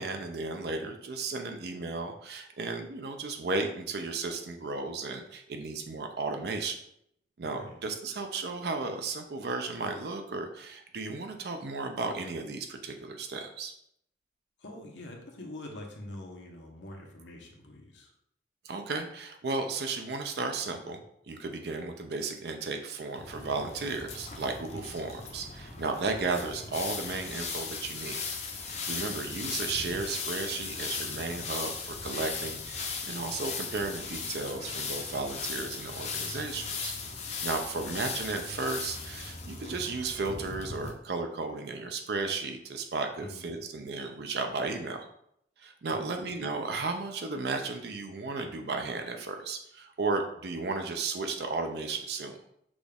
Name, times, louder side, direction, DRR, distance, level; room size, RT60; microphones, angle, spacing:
voice 1, 0.0-6.8 7.4-13.7 18.6-21.0 21.3-28.2 28.6-37.0 37.2-45.1 45.6-52.4, right 3 dB, 60° right, 5 dB, 0.5 m, -34 dB
voice 2, 7.4-7.8 14.6-18.1 24.7-25.0 28.9-29.1 43.2-43.5 45.9-46.2, left 1 dB, 85° left, 1 dB, 0.9 m, -45 dB
sound 1, 23.1-40.9, left 5 dB, 40° left, 0.6 m, -38 dB
6.1 x 2.4 x 3.4 m, 0.72 s
head